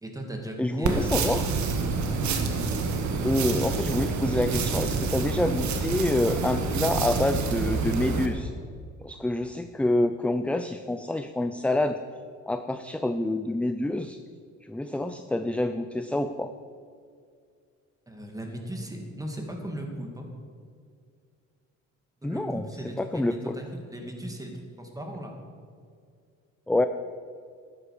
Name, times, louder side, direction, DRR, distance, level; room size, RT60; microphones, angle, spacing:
voice 1, 0.0-1.2 2.2-2.3 18.1-20.3 22.2-25.3, right 1 dB, 10° right, 2 dB, 2.4 m, -37 dB
voice 2, 0.6-1.5 3.2-8.5 9.0-12.0 12.5-14.2 14.6-16.5 22.2-22.6 23.0-23.6 26.7-26.9, left 1 dB, 5° left, 9 dB, 0.4 m, -27 dB
sound 1, 0.8-8.3, right 4 dB, 70° right, 1.5 m, -27 dB
13.0 x 9.8 x 5.0 m, 2.2 s
cardioid pair, 90°, 30 cm